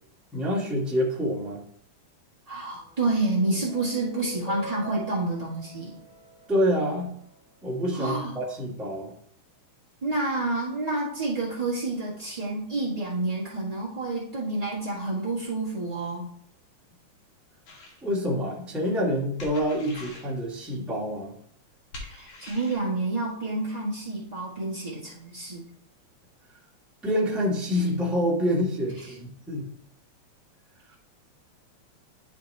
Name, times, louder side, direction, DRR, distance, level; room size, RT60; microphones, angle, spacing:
voice 1, 0.3-1.6 6.5-7.2 7.6-9.1 18.0-21.3 27.0-29.7, equal, ahead, -5 dB, 0.8 m, -27 dB
voice 2, 2.5-6.0 7.9-8.4 10.0-16.3 22.1-25.6 29.0-29.1, right 2 dB, 40° right, -8 dB, 0.5 m, -29 dB
sound 1, 2.7-7.3, equal, 85° left, 2.6 m, -43 dB
sound 2, 17.7-18.0 19.4-20.3 21.9-22.8, left 2 dB, 60° left, 2.1 m, -43 dB
11.0 x 3.6 x 3.3 m, 0.67 s
omnidirectional pair, 3.4 m